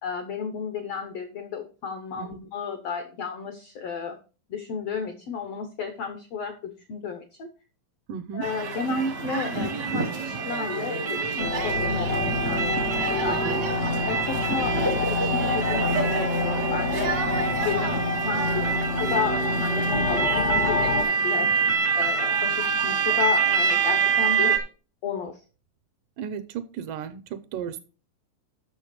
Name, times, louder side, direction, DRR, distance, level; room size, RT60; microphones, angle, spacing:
voice 1, 0.0-4.2 4.5-7.5 8.3-13.6 14.1-17.2 17.6-21.5 21.9-24.6 25.0-25.4, left 5 dB, 80° left, 8 dB, 1.4 m, -32 dB
voice 2, 8.1-8.5 13.2-13.6 26.2-27.8, right 8 dB, 80° right, 10 dB, 2.1 m, -34 dB
sound 1, 8.4-24.6, right 5 dB, 65° right, 0.9 m, -26 dB
sound 2, 11.4-21.0, left 3 dB, 65° left, 0.9 m, -27 dB
7.0 x 6.5 x 5.1 m, 0.35 s
omnidirectional pair, 4.1 m